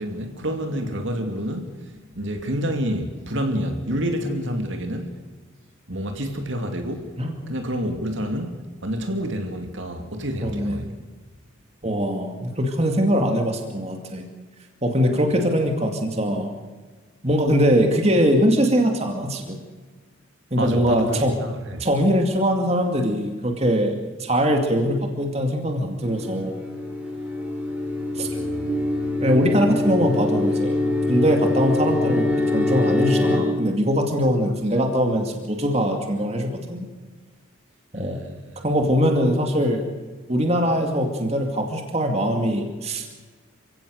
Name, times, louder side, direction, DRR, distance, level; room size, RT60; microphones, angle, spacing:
voice 1, 0.0-5.2 5.9-7.1 7.5-10.9 20.6-21.8 28.2-28.6 34.4-34.5 37.9-38.6, equal, 60° right, 2.5 m, -28 dB
voice 2, 7.2-7.5 10.4-10.8 11.8-14.2 14.8-16.5 17.2-19.6 20.5-21.4 21.8-26.5 28.1-28.3 29.2-30.8 31.1-36.9 37.9-38.2 38.6-39.9 40.3-43.3, equal, 30° right, 2.4 m, -22 dB
sound 1, 26.0-33.4, left 2 dB, 5° right, 5.5 m, -24 dB
28.5 x 17.0 x 6.6 m
head